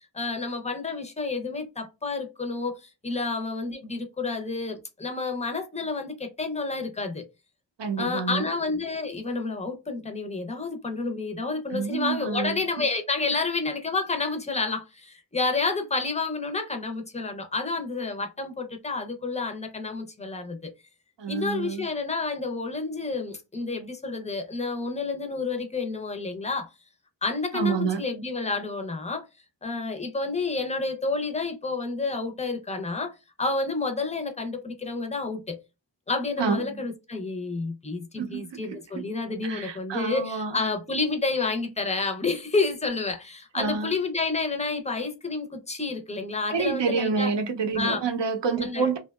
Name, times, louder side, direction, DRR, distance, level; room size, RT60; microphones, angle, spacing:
voice 1, 0.1-7.3 8.0-20.7 21.3-26.7 27.2-29.2 29.6-35.6 36.1-47.3 47.8-48.0 48.6-48.9, left 3 dB, 15° left, 0.5 m, -30 dB
voice 2, 7.8-8.5 11.7-12.8 21.2-21.9 27.5-28.0 36.4-36.8 38.2-39.0 39.4-40.6 43.5-43.9 46.5-49.0, right 5 dB, 60° right, 0.6 m, -28 dB
2.7 x 2.1 x 2.3 m
wide cardioid pair, 75°, 48 cm